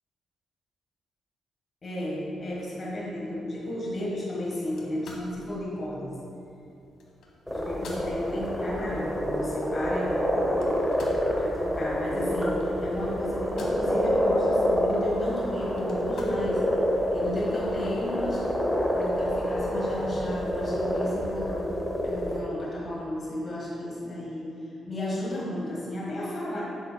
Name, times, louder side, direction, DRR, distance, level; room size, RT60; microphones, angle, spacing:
voice 1, 1.8-6.2 7.5-10.8 11.4-16.8 17.1-18.6 18.9-21.7 22.0-26.6, left 1 dB, 35° left, -5 dB, 1.4 m, -33 dB
sound 1, 4.6-17.0, left 2 dB, 75° left, 1.0 m, -49 dB
sound 2, 7.5-22.4, equal, 5° left, 0.8 m, -27 dB
8.0 x 7.0 x 2.2 m, 2.8 s
cardioid pair, 100°, 0 cm